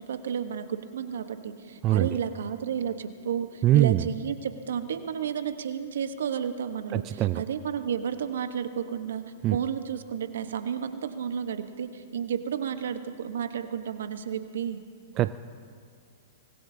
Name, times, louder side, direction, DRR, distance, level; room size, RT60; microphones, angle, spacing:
voice 1, 0.1-9.2 9.5-14.8, right 8 dB, 75° right, 9 dB, 1.1 m, -32 dB
voice 2, 3.6-4.0 6.9-7.4 9.4-9.6 15.2-15.3, right 14 dB, 35° right, 13 dB, 0.4 m, -22 dB
24.5 x 20.0 x 2.8 m, 2.2 s
hypercardioid pair, 120°, 0 cm